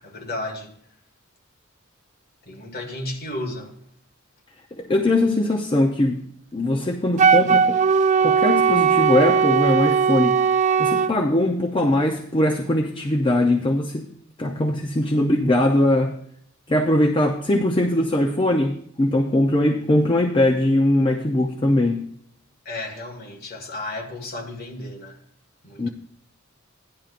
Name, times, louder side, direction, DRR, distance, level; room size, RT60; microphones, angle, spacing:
voice 1, 0.0-0.7 2.5-3.7 22.7-25.2 25.6-25.9, left 1 dB, 45° left, 1.8 m, -33 dB
voice 2, 4.7-6.2 6.5-7.8 8.2-10.4 10.8-14.1 14.4-16.2 16.7-22.0 25.8-25.9, left 1 dB, 25° left, 0.6 m, -21 dB
Wind instrument woodwind instrument, 7.2-11.1, right 6 dB, 35° right, 0.3 m, -18 dB
16.0 x 10.5 x 2.5 m
head